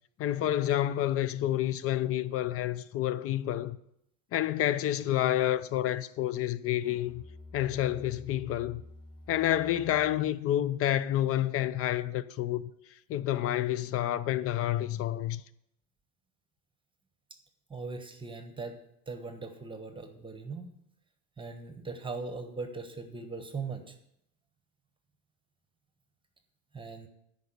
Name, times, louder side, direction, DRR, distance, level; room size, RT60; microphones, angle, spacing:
voice 1, 0.2-3.8 4.3-7.2 7.5-8.8 9.3-12.6 13.1-15.4, left 12 dB, 35° left, 0.5 m, -29 dB
Musical instrument, 6.8-10.3, left 2 dB, 60° left, 4.3 m, -50 dB
voice 2, 17.7-18.8 19.1-20.7 21.4-24.0 26.7-27.1, right 4 dB, 15° right, 1.2 m, -39 dB
9.5 x 5.4 x 8.2 m
supercardioid pair, 110°, 39 cm